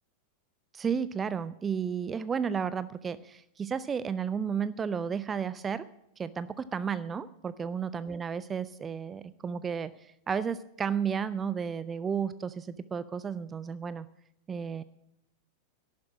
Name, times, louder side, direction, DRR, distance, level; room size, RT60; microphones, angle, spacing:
voice 1, 0.7-5.9 6.2-14.1 14.5-14.8, right 7 dB, 20° right, 16 dB, 0.5 m, -33 dB
11.5 x 10.5 x 7.2 m, 0.79 s
figure-of-eight pair, 90°, 0 cm